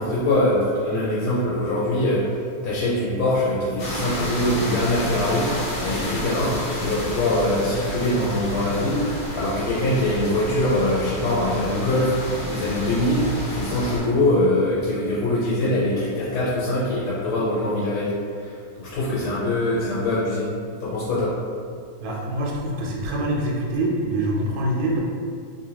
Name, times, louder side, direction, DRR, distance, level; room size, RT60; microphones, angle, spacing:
voice 1, 0.0-2.3 2.6-5.5 5.8-9.1 9.3-12.1 12.5-18.1 18.4-20.5 20.8-21.3, left 1 dB, 85° left, -9 dB, 1.6 m, -23 dB
sound 1, 3.8-14.0, equal, 70° left, 1.4 m, -31 dB
voice 2, 22.0-25.0, right 1 dB, 70° right, -2 dB, 1.1 m, -25 dB
3.5 x 2.5 x 2.8 m, 2.2 s
omnidirectional pair, 2.3 m